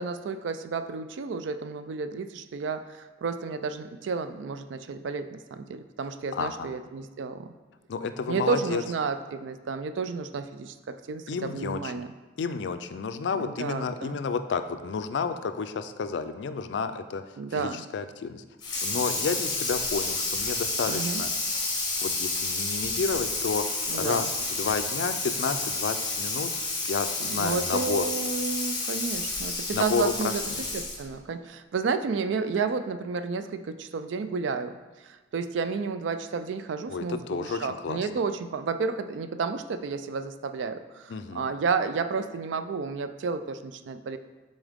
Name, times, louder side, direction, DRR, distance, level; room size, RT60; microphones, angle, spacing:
voice 1, 0.0-7.5 8.3-12.1 13.4-14.2 17.4-17.8 20.9-21.2 23.9-24.3 27.2-34.8 35.0-44.2, right 5 dB, 80° right, 10 dB, 0.4 m, -31 dB
voice 2, 6.3-6.7 7.9-8.8 11.3-11.9 12.4-17.2 17.5-18.4 18.8-21.3 22.0-26.5 26.8-28.0 29.7-30.6 36.9-38.0 41.1-41.5, left 5 dB, 70° left, 10 dB, 0.4 m, -31 dB
Water tap faucet / Sink (filling or washing), 18.6-31.1, left 3 dB, 25° left, 1.3 m, -30 dB
7.3 x 4.0 x 3.5 m, 1.2 s
head